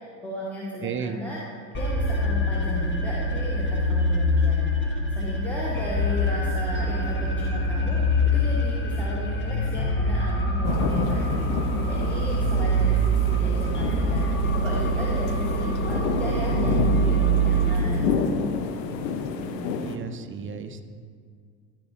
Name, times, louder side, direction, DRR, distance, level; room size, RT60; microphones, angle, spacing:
voice 1, 0.0-1.4 1.7-8.0 8.3-18.2, equal, 5° left, -6 dB, 1.4 m, -35 dB
voice 2, 0.8-1.2 17.7-17.8 19.1-20.8, right 6 dB, 25° right, 8 dB, 0.6 m, -34 dB
sound 1, 1.7-17.7, right 1 dB, 25° left, 1.2 m, -24 dB
sound 2, 10.6-20.0, left 6 dB, 75° left, 0.7 m, -29 dB
13.0 x 4.6 x 3.6 m, 2.1 s
figure-of-eight pair, 65°, 50 cm